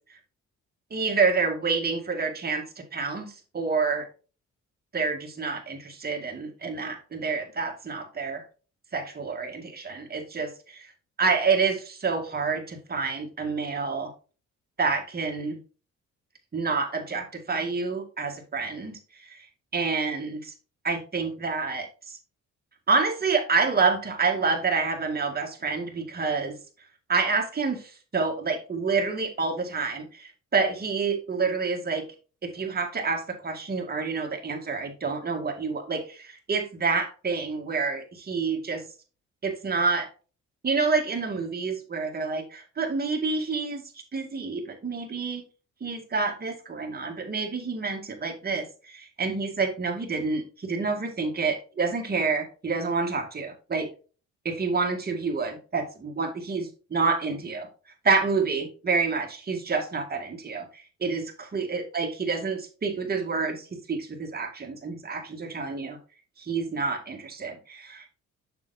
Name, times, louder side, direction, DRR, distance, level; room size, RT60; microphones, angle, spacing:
voice 1, 0.9-2.6 2.9-4.1 4.9-8.4 8.9-10.5 11.2-14.1 14.8-15.6 16.5-19.5 19.7-20.4 20.8-22.2 22.9-26.6 27.1-32.0 32.4-38.8 39.4-40.1 40.6-43.8 44.1-45.4 45.8-53.9 54.4-57.7 58.0-66.0 66.4-68.2, right 4 dB, 30° right, 2 dB, 2.0 m, -28 dB
6.8 x 6.7 x 2.8 m, 0.36 s
cardioid pair, 90°, 30 cm